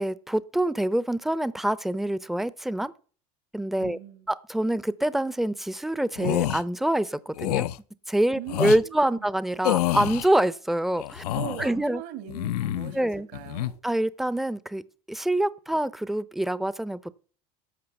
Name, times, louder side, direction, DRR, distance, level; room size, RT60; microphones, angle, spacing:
voice 1, 0.0-2.9 3.5-4.0 4.3-7.7 8.1-11.2 11.6-12.0 12.9-13.3 13.8-14.8 15.1-17.1, right 1 dB, ahead, 18 dB, 0.5 m, -26 dB
voice 2, 3.8-4.3 8.3-9.3 11.3-13.7, right 11 dB, 70° right, 9 dB, 2.3 m, -40 dB
sound 1, 6.2-6.6 7.4-7.8 8.5-8.8 9.6-10.3 11.0-11.7 12.3-13.0 13.3-13.7, left 14 dB, 85° left, 0.5 m, -27 dB
12.5 x 6.1 x 7.0 m, 0.43 s
hypercardioid pair, 90°, 19 cm